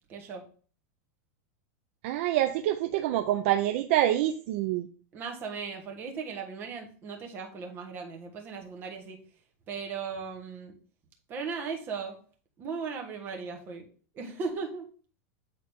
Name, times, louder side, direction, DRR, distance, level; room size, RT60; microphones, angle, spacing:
voice 1, 0.1-0.4 5.1-9.2 9.7-10.7 11.3-12.2 12.6-13.8 14.1-14.8, right 5 dB, 25° right, 2 dB, 1.3 m, -37 dB
voice 2, 2.0-4.9, right 13 dB, 50° right, 6 dB, 0.5 m, -26 dB
8.1 x 3.9 x 3.5 m, 0.42 s
supercardioid pair, 160°, 8 cm